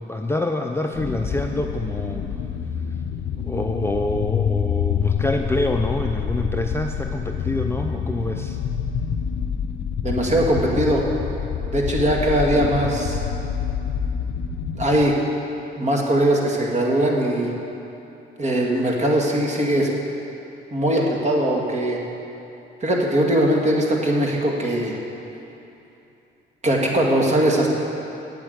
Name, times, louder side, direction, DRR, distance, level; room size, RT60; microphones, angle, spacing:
voice 1, 0.0-2.2 3.4-8.6, left 2 dB, 10° left, 3 dB, 0.5 m, -26 dB
Portal Continuous Rumble, 0.9-15.0, left 7 dB, 65° left, 0.7 m, -27 dB
voice 2, 10.0-11.1 11.7-13.2 14.8-15.2 15.8-17.5 18.4-19.9 20.7-22.0 22.8-24.9 26.6-27.7, right 1 dB, 35° right, -1 dB, 2.1 m, -20 dB
8.6 x 8.2 x 8.1 m, 2.9 s
cardioid pair, 90°, 20 cm